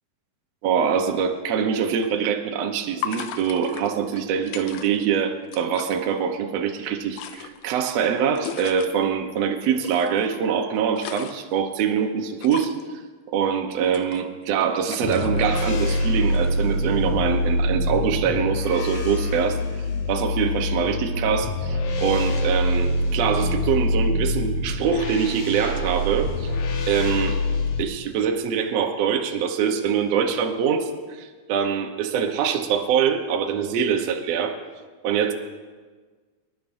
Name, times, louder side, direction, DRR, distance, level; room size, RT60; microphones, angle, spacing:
voice 1, 0.6-12.7 13.3-19.6 20.1-26.5 26.9-27.4 27.8-30.9 31.2-34.6 35.0-35.3, right 7 dB, 80° right, 4 dB, 1.5 m, -24 dB
sound 1, 2.0-2.1 3.0-5.2 5.4-6.0 6.9-8.9 9.8-10.3 10.7-11.6 12.4-12.9 13.7-14.6 14.9-15.6 16.3-16.6, left 9 dB, 85° left, 1.8 m, -37 dB
sound 2, 15.0-27.8, left 1 dB, 65° left, 2.1 m, -25 dB
25.0 x 12.0 x 2.7 m, 1.4 s
omnidirectional pair, 4.4 m